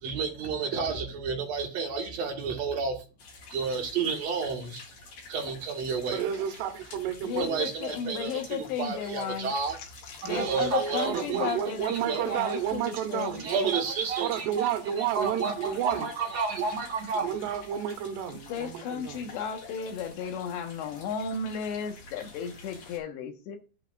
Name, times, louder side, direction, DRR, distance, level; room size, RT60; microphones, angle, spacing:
voice 1, 0.0-3.0 3.5-4.8 5.3-6.2 7.4-9.8 10.2-11.5 11.9-12.6 13.4-17.4, right 5 dB, 60° right, 1.9 m, -31 dB
sound 1, 3.2-23.0, left 4 dB, 50° left, 2.7 m, -49 dB
voice 2, 6.1-7.6 11.1-13.8 14.2-16.1 17.2-19.3, right 10 dB, 75° right, 3.1 m, -31 dB
voice 3, 7.2-9.5 10.2-13.5 18.5-23.6, left 7 dB, 80° left, 3.5 m, -34 dB
11.5 x 8.5 x 2.4 m
omnidirectional pair, 5.1 m